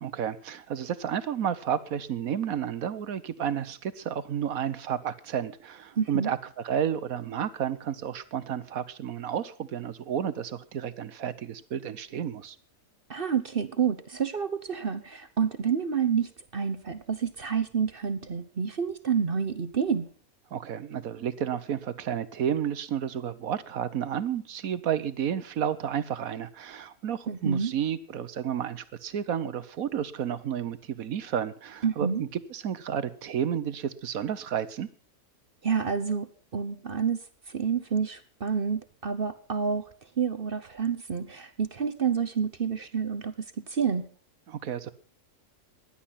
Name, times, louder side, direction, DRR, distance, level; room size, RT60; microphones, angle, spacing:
voice 1, 0.0-6.4 6.6-12.6 20.5-34.9 44.5-44.9, right 9 dB, 70° right, 1.3 m, -31 dB
voice 2, 6.0-6.3 13.1-20.1 27.3-27.7 31.8-32.2 35.6-36.3 36.5-39.8 40.2-44.1, right 6 dB, 45° right, 1.0 m, -29 dB
16.5 x 11.5 x 5.7 m
omnidirectional pair, 1.6 m